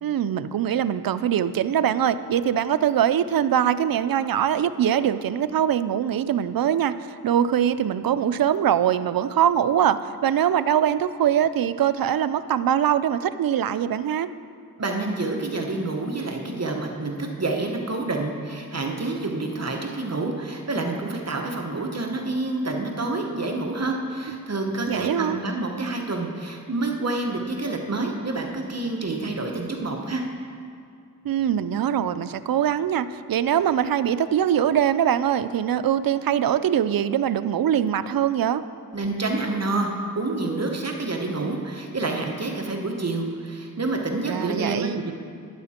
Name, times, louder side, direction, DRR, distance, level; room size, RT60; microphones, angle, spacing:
voice 1, 0.0-14.3 24.9-25.4 31.2-38.6 44.2-45.0, right 9 dB, 70° right, 13 dB, 0.5 m, -22 dB
voice 2, 14.8-30.2 38.9-45.1, right 2 dB, 45° right, 2 dB, 1.1 m, -28 dB
12.0 x 9.5 x 4.3 m, 2.3 s
wide cardioid pair, 70°, 36 cm